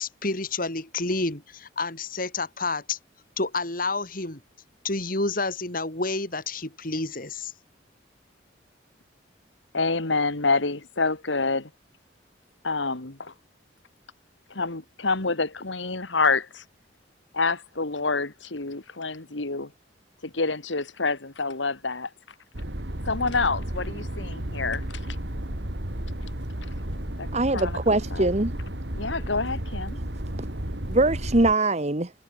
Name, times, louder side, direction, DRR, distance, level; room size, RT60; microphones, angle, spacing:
voice 1, 0.0-3.0 3.4-4.4 4.8-7.5, left 3 dB, 50° left, 4.3 m, -29 dB
voice 2, 9.7-11.7 12.6-13.3 14.5-16.6 17.3-19.7 20.2-22.1 23.0-24.8 27.2-27.8 28.1-28.3 28.9-30.0, left 3 dB, 80° left, 2.2 m, -27 dB
sound 1, 22.5-31.5, right 1 dB, 65° right, 3.2 m, -33 dB
voice 3, 27.3-28.5 30.9-32.1, right 2 dB, 35° right, 1.5 m, -22 dB
head